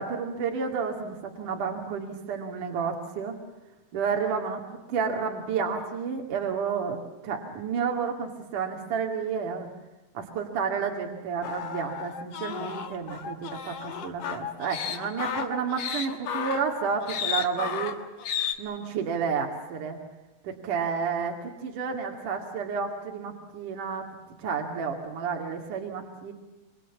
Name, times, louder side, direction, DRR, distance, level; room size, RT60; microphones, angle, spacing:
voice 1, 0.0-3.4 3.9-4.6 4.9-7.0 7.2-9.7 10.2-18.0 18.6-20.0 20.4-24.1 24.4-26.3, right 6 dB, 60° right, 1 dB, 3.6 m, -31 dB
sound 1, 11.4-18.5, left 8 dB, 50° left, 2.5 m, -33 dB
28.5 x 24.5 x 7.1 m, 1.1 s
omnidirectional pair, 4.4 m